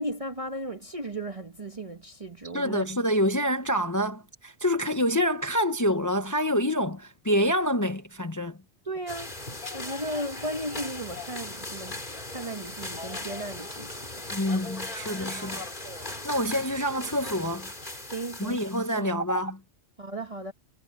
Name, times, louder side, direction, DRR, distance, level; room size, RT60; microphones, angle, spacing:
voice 1, 0.0-2.9 8.8-9.3 9.7-11.9 12.3-14.3 18.1-18.6 18.9-19.1 20.0-20.5, right 1 dB, 30° right, 1.3 m, -35 dB
voice 2, 2.5-8.6 14.3-15.6 16.2-17.7 18.4-19.6, equal, 20° left, 0.8 m, -27 dB
sound 1, 9.1-19.0, left 2 dB, 45° left, 3.8 m, -38 dB
omnidirectional pair, 1.2 m